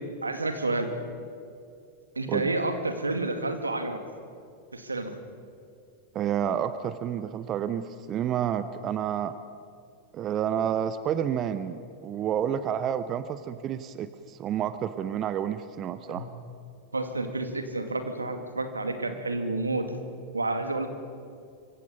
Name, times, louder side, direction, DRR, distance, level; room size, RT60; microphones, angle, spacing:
voice 1, 0.2-0.9 2.2-4.0 4.7-5.1 16.1-16.2 16.9-19.9 20.3-20.9, right 2 dB, 80° right, 7 dB, 2.3 m, -30 dB
voice 2, 6.1-9.3 10.1-16.3, right 9 dB, 30° right, 12 dB, 0.8 m, -29 dB
25.5 x 25.0 x 5.6 m, 2.4 s
figure-of-eight pair, 90°, 0 cm